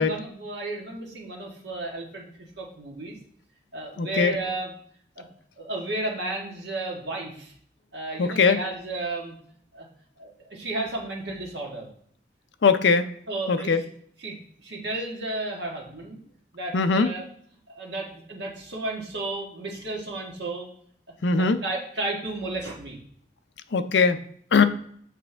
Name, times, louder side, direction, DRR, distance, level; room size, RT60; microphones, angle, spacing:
voice 1, 0.0-2.3 2.6-3.2 3.7-4.7 5.1-5.3 5.6-7.5 7.9-9.3 9.7-9.9 10.2-11.9 13.3-13.7 14.2-16.2 16.5-17.2 17.7-20.7 21.4-23.0, right 2 dB, 70° right, -1 dB, 1.6 m, -33 dB
voice 2, 4.0-4.3 8.2-8.6 12.6-13.1 13.5-13.8 16.7-17.1 21.2-21.6 23.7-24.2 24.5-24.6, left 5 dB, 75° left, 10 dB, 0.5 m, -20 dB
7.5 x 4.4 x 3.3 m, 0.62 s
head